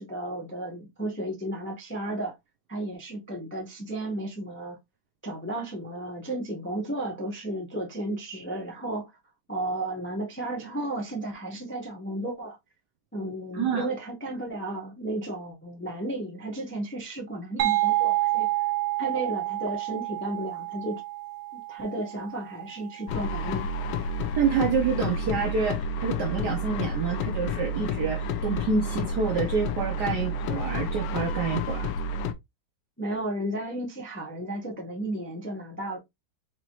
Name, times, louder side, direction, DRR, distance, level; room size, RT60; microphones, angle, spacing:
voice 1, 0.0-2.4 2.7-4.8 5.2-9.1 9.5-12.6 13.1-18.5 19.0-21.0 21.5-23.7 33.0-36.0, right 1 dB, 10° left, 0.5 m, -33 dB
voice 2, 13.5-13.9 24.4-31.9, right 5 dB, 70° right, 1.0 m, -27 dB
sound 1, 17.6-23.1, right 17 dB, 90° right, 1.6 m, -29 dB
sound 2, 23.1-32.3, left 1 dB, 70° left, 1.1 m, -30 dB
5.0 x 2.8 x 3.0 m
omnidirectional pair, 2.4 m